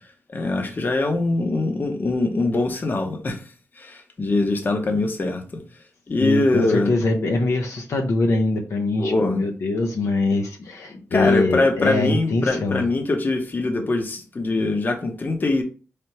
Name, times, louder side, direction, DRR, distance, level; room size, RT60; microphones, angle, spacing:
voice 1, 0.3-3.4 3.8-5.6 6.1-6.9 9.0-9.5 10.9-15.6, left 2 dB, 40° left, 0.9 m, -23 dB
voice 2, 6.2-12.8, left 2 dB, 75° left, 0.7 m, -23 dB
4.3 x 3.4 x 2.9 m
cardioid pair, 90°, 5 cm